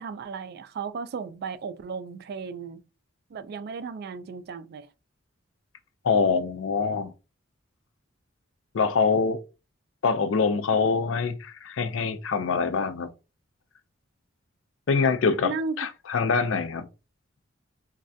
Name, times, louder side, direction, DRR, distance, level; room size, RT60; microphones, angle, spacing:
voice 1, 0.0-2.8 3.3-4.9 15.4-15.8, right 5 dB, 50° right, 0.3 m, -35 dB
voice 2, 6.0-7.1 8.7-9.4 10.0-13.1 14.9-16.9, left 5 dB, 75° left, 0.4 m, -24 dB
3.2 x 2.3 x 2.6 m
head